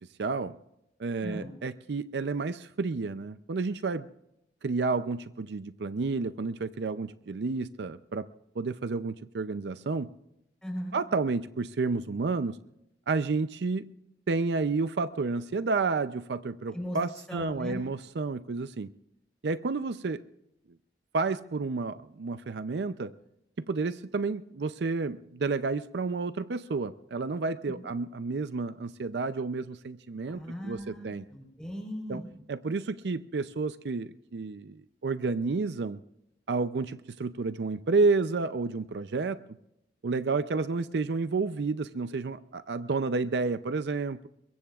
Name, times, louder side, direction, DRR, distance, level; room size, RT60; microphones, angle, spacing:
voice 1, 0.2-0.5 1.0-4.1 4.6-8.3 8.6-10.1 10.9-12.6 13.1-13.9 14.3-18.9 19.4-20.2 21.1-23.1 23.6-31.2 32.1-32.2 32.5-36.0 36.5-39.4 40.0-44.3, right 4 dB, 70° right, 13 dB, 0.5 m, -30 dB
voice 2, 1.2-1.5 10.6-11.0 16.7-17.0 17.3-17.8 30.2-32.4, equal, 5° left, 2 dB, 4.1 m, -38 dB
23.0 x 22.0 x 2.4 m, 0.81 s
head